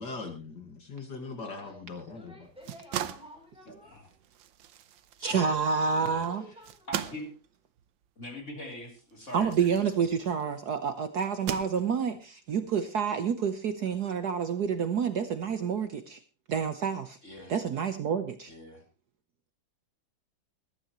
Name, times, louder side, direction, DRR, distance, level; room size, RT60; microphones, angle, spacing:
voice 1, 0.0-2.4, left 3 dB, 60° left, 4 dB, 2.5 m, -40 dB
voice 2, 1.3-4.0 6.0-7.2, left 1 dB, 5° right, -1 dB, 7.8 m, -52 dB
sound 1, 2.4-10.5 11.2-12.2, right 10 dB, 75° right, 1.6 m, -40 dB
voice 3, 3.7-4.1 5.2-5.4 6.0-6.2 6.9-7.3 8.2-9.7 17.2-17.5 18.5-18.8, left 1 dB, 35° left, 1 dB, 3.9 m, -43 dB
voice 4, 5.2-6.4 9.3-16.2 16.5-17.2 17.5-18.5, right 6 dB, 60° right, 9 dB, 1.5 m, -28 dB
21.5 x 12.0 x 3.1 m, 0.33 s
omnidirectional pair, 2.1 m